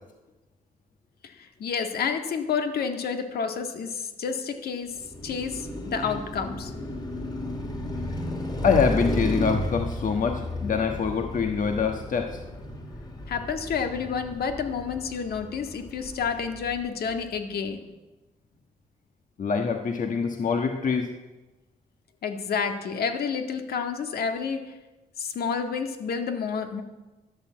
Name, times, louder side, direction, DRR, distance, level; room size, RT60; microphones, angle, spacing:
voice 1, 1.2-5.0 5.2-6.7 13.3-17.8 22.2-24.7 25.2-26.8, left 6 dB, 75° left, 5 dB, 1.8 m, -29 dB
Car passing by, 4.9-17.1, equal, 25° left, 2.7 m, -33 dB
voice 2, 8.6-12.4 19.4-21.1, left 5 dB, 55° left, 4 dB, 1.4 m, -25 dB
13.0 x 11.0 x 7.5 m, 1.1 s
cardioid pair, 105°, 16 cm